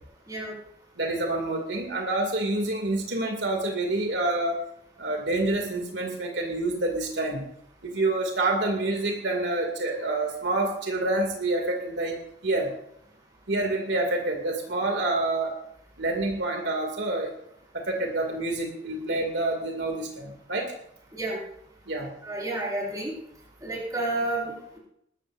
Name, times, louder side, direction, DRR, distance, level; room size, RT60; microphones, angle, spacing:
voice 1, 1.0-4.6 5.0-7.4 7.8-12.2 12.4-12.7 13.5-15.5 16.0-17.3 17.7-20.7 21.9-22.1, right 2 dB, 75° right, 1 dB, 2.5 m, -27 dB
voice 2, 22.2-23.1 23.6-24.8, right 2 dB, 20° right, -4 dB, 5.3 m, -30 dB
20.5 x 14.0 x 2.6 m, 0.73 s
head